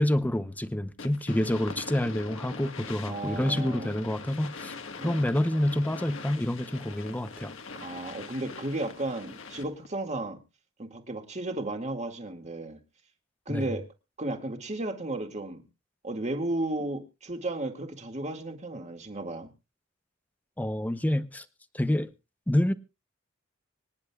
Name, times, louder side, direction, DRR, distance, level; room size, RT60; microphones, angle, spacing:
voice 1, 0.0-4.7 5.0-7.5 13.5-13.6 20.6-21.4 21.7-22.1 22.5-22.7, left 1 dB, 10° left, 0.7 m, -27 dB
sound 1, 1.0-9.9, left 4 dB, 70° left, 1.4 m, -42 dB
voice 2, 3.1-3.9 5.0-5.2 7.8-10.4 10.8-12.8 13.5-13.8 14.2-15.6 16.0-19.5, right 2 dB, 35° right, 2.0 m, -34 dB
25.5 x 10.5 x 2.3 m
head